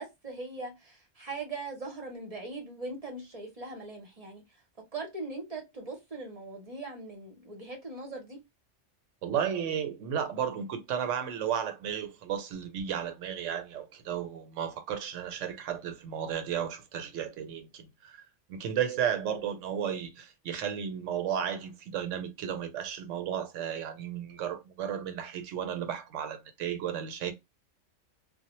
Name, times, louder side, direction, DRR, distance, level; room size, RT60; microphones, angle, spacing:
voice 1, 0.0-4.4 4.9-8.4, right 3 dB, 35° right, 0.7 m, -40 dB
voice 2, 9.2-27.3, right 8 dB, 80° right, 0.9 m, -33 dB
2.1 x 2.0 x 2.9 m
omnidirectional pair, 1.3 m